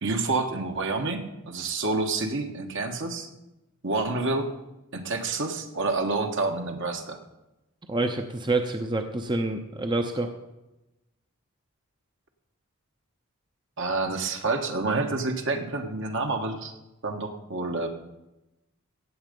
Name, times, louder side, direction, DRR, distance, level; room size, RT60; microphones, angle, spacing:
voice 1, 0.0-3.3 3.8-4.5 4.9-7.2 13.8-16.7 17.0-17.9, right 3 dB, 60° right, 5 dB, 1.5 m, -28 dB
voice 2, 7.9-10.3, right 2 dB, 20° right, 6 dB, 0.7 m, -27 dB
16.5 x 7.6 x 5.3 m, 0.97 s
head